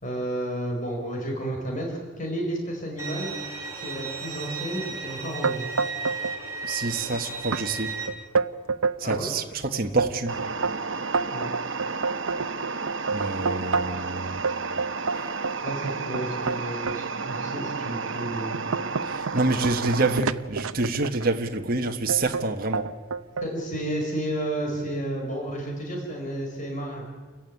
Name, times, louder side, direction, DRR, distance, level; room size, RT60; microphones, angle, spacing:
voice 1, 0.0-3.3 3.8-5.7 9.0-9.3 11.3-11.5 15.6-18.6 23.4-27.0, right 1 dB, 35° left, 1 dB, 4.7 m, -31 dB
Bowed string instrument, 3.0-8.1, right 4 dB, 15° right, 3.7 m, -34 dB
sound 1, 5.4-6.4 6.6-7.2 7.5-7.6 8.1-9.3 9.7-14.1 14.4-17.0 17.6-17.8 18.2-21.3 22.1-22.5 22.7-23.5, right 4 dB, 75° right, 0.7 m, -28 dB
voice 2, 6.7-8.0 9.0-10.4 13.1-14.4 15.2-15.3 19.0-22.9, right 3 dB, 40° right, 3 dB, 1.4 m, -27 dB
sound 2, 10.3-20.2, right 4 dB, 60° right, 1.1 m, -32 dB
29.0 x 15.0 x 9.6 m, 1.4 s
head